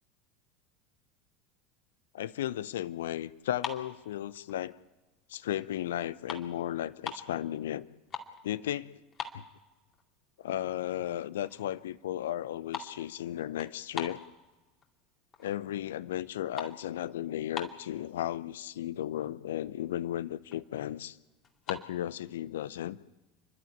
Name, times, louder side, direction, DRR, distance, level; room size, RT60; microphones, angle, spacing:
voice 1, 2.1-4.8 5.3-7.8 8.4-8.9 9.3-9.4 10.4-14.2 15.4-21.2 21.7-23.0, left 12 dB, 70° left, 18 dB, 0.7 m, -35 dB
sound 1, 3.6-4.9 5.3-5.6 5.9-7.4 7.8-8.4 8.7-8.8 9.1-10.0 10.4-10.5 11.1-11.2 11.4-11.8 12.1-14.9 15.3-15.8 16.1-18.0 18.7-18.8 19.0-19.3 19.7-19.8 20.0-20.7 21.4-21.9, left 6 dB, 35° left, 2.4 m, -42 dB
30.0 x 12.0 x 8.6 m, 1.1 s
figure-of-eight pair, 75°, 0 cm